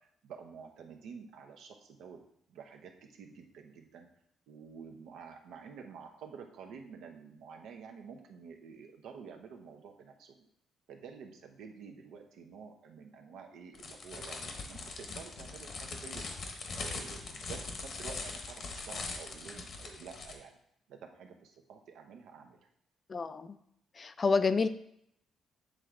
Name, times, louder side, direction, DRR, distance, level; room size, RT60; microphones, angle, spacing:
voice 1, 0.0-2.2 2.5-4.1 4.5-10.5 10.9-16.2 16.7-20.6 20.9-22.6, right 6 dB, 85° right, 4 dB, 0.8 m, -49 dB
sound 1, 13.7-20.4, left 3 dB, 55° left, 1.0 m, -41 dB
voice 2, 23.1-23.6 24.0-24.7, left 4 dB, 35° left, 12 dB, 0.4 m, -28 dB
7.6 x 3.4 x 3.7 m, 0.72 s
cardioid pair, 90°, 0 cm